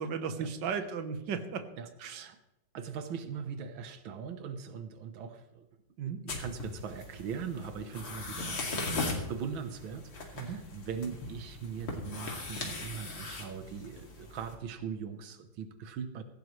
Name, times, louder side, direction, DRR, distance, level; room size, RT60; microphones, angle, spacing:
voice 1, 0.0-1.6 2.0-2.3 6.0-6.2 10.3-10.6, right 6 dB, 70° right, 8 dB, 1.8 m, -35 dB
voice 2, 1.8-2.4 2.7-5.7 6.1-16.2, right 6 dB, 90° right, 8 dB, 1.8 m, -40 dB
sound 1, 6.3-14.5, left 2 dB, 75° left, 3.2 m, -39 dB
17.5 x 15.5 x 3.2 m, 0.94 s
omnidirectional pair, 2.1 m